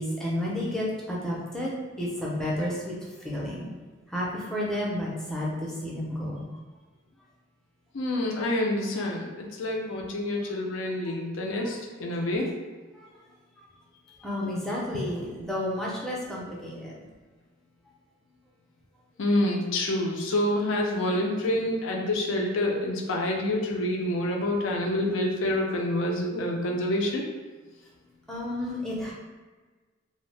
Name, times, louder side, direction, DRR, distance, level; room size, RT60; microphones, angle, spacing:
voice 1, 0.0-2.9 3.2-3.7 4.1-6.5 14.2-16.9 28.3-29.1, left 1 dB, ahead, -5 dB, 0.5 m, -31 dB
voice 2, 7.9-12.5 19.2-27.2, left 1 dB, 80° left, 0 dB, 0.5 m, -27 dB
2.7 x 2.1 x 3.2 m, 1.3 s
head